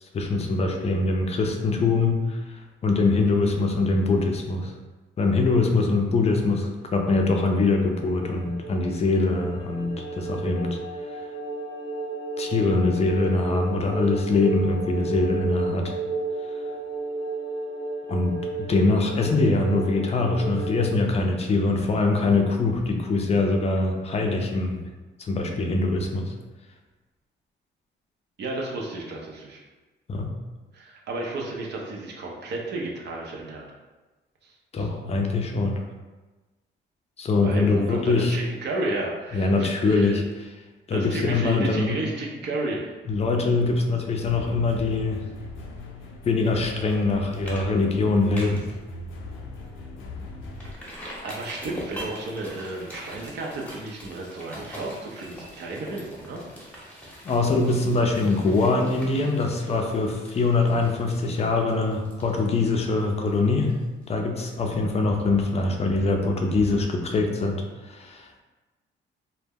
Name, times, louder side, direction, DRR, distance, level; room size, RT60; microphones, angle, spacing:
voice 1, 0.0-4.7 5.2-10.8 12.4-16.0 18.1-24.8 25.2-26.3 30.1-30.3 34.7-35.8 37.2-38.4 39.3-40.5 40.9-42.0 43.1-45.2 46.3-48.6 57.2-63.8 64.1-68.4, left 3 dB, 30° left, 3 dB, 0.4 m, -23 dB
sound 1, 6.8-20.9, right 3 dB, 80° right, 0.8 m, -33 dB
voice 2, 28.4-29.6 30.7-33.6 34.4-34.9 37.4-40.2 40.9-42.9 51.2-56.4, right 2 dB, 60° right, -1 dB, 0.5 m, -32 dB
sound 2, 44.2-50.7, left 2 dB, 90° left, 0.4 m, -40 dB
sound 3, 46.9-47.1 47.4-47.6 47.9-48.7 49.2-49.3 49.7-49.8 50.6-64.1 64.4-64.5, equal, 5° left, 0.8 m, -43 dB
2.1 x 2.0 x 3.5 m, 1.2 s
cardioid pair, 90°, 20 cm